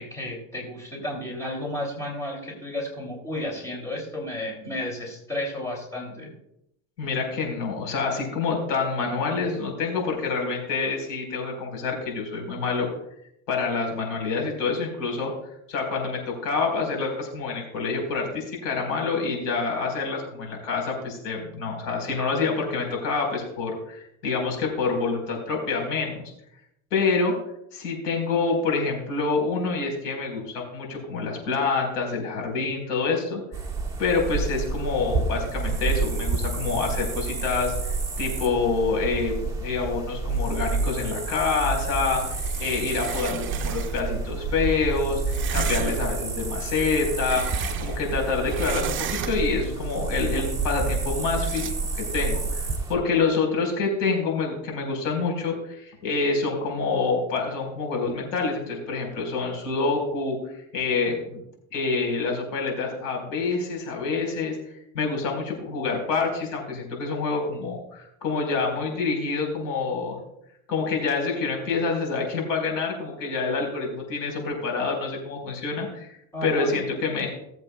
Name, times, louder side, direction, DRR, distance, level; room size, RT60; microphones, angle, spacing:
voice 1, 0.0-6.3 76.3-76.8, left 1 dB, 10° left, -1 dB, 2.8 m, -32 dB
voice 2, 7.0-12.9 13.5-15.3 15.7-26.3 26.9-27.3 27.7-33.4 34.0-60.4 60.7-61.4 61.7-64.6 64.9-70.2 70.7-77.3, left 4 dB, 75° left, 1 dB, 4.4 m, -27 dB
sound 1, 33.5-52.9, right 4 dB, 10° right, 1.5 m, -29 dB
sound 2, 42.2-44.1 45.3-46.2 46.8-48.2 48.4-49.6 51.3-51.7, right 8 dB, 30° right, 0.8 m, -34 dB
18.5 x 7.8 x 2.3 m, 0.79 s
supercardioid pair, 125°, 38 cm